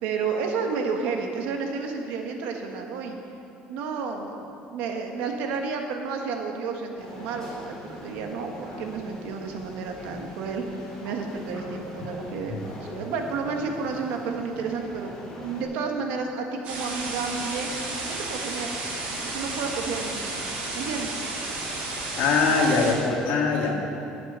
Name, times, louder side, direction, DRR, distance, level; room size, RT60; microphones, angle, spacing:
voice 1, 0.0-3.2 3.7-17.7 18.0-18.7 19.2-20.3 20.7-21.1 22.5-22.6, right 5 dB, 75° right, 3 dB, 1.5 m, -31 dB
sound 1, 7.0-15.6, left 1 dB, 20° left, 3.3 m, -42 dB
sound 2, 16.6-22.9, right 2 dB, 60° right, 3.2 m, -32 dB
voice 2, 22.2-23.8, left 4 dB, 70° left, 0 dB, 1.8 m, -22 dB
11.5 x 7.7 x 6.8 m, 2.8 s
cardioid pair, 155°, 3 cm